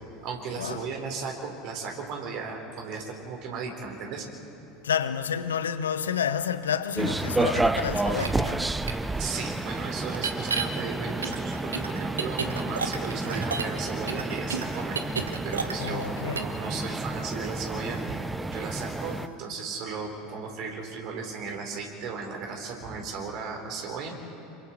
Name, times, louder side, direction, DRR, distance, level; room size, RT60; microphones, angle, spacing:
voice 1, 0.2-4.2 9.1-15.1 15.4-18.2 18.5-24.2, right 4 dB, 50° right, 4.1 m, -35 dB
voice 2, 4.8-8.7 15.8-16.5, left 8 dB, 80° left, 0.9 m, -29 dB
sound 1, 7.0-19.3, right 2 dB, 10° right, 0.6 m, -31 dB
sound 2, 8.1-8.3 8.9-9.0 10.1-10.6 11.2-13.8 14.1-16.1 16.3-16.6, right 5 dB, 85° right, 1.1 m, -31 dB
27.5 x 23.5 x 4.6 m
figure-of-eight pair, 75°, 0 cm